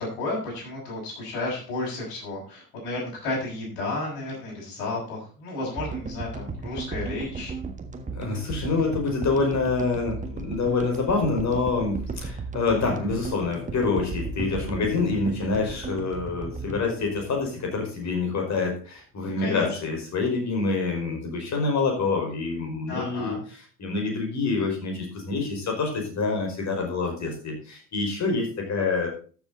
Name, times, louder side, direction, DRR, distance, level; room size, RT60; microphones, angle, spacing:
voice 1, 0.0-7.5 19.2-19.8 22.9-23.4, left 2 dB, 60° left, -4 dB, 6.7 m, -32 dB
sound 1, 5.8-18.1, right 3 dB, 15° right, 1.5 m, -35 dB
voice 2, 8.1-23.4 23.8-29.1, left 4 dB, 35° left, 2 dB, 4.9 m, -26 dB
13.5 x 7.4 x 4.1 m, 0.39 s
figure-of-eight pair, 65°, 48 cm